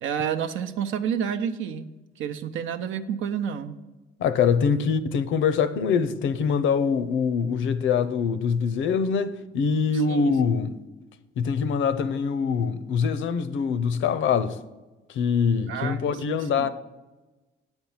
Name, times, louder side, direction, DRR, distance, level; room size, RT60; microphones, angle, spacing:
voice 1, 0.0-1.9 2.2-3.7 10.1-10.2 15.7-16.7, right 8 dB, 80° right, 0.6 m, -29 dB
voice 2, 4.2-10.8 11.4-14.6 15.1-16.7, left 6 dB, 75° left, 0.6 m, -24 dB
7.9 x 4.5 x 7.2 m
cardioid pair, 90°, 20 cm